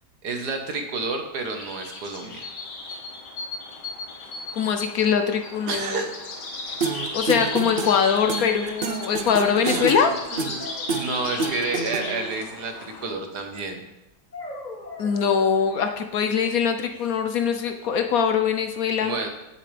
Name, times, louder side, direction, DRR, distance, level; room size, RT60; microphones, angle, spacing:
voice 1, 0.2-2.5 5.7-6.1 8.6-8.7 9.6-9.8 10.3-10.7 10.9-13.8 19.0-19.3, right 3 dB, 70° right, 4 dB, 1.8 m, -30 dB
sound 1, 1.5-13.1, left 3 dB, 90° left, 2.2 m, -36 dB
voice 2, 4.5-6.0 7.1-10.1 15.0-19.2, left 7 dB, 65° left, 6 dB, 1.1 m, -22 dB
sound 2, 6.8-12.3, right 4 dB, 45° right, 0.7 m, -29 dB
sound 3, 10.6-11.5 14.3-16.0, left 2 dB, 25° left, 1.8 m, -40 dB
16.0 x 7.7 x 3.4 m, 0.92 s
omnidirectional pair, 1.8 m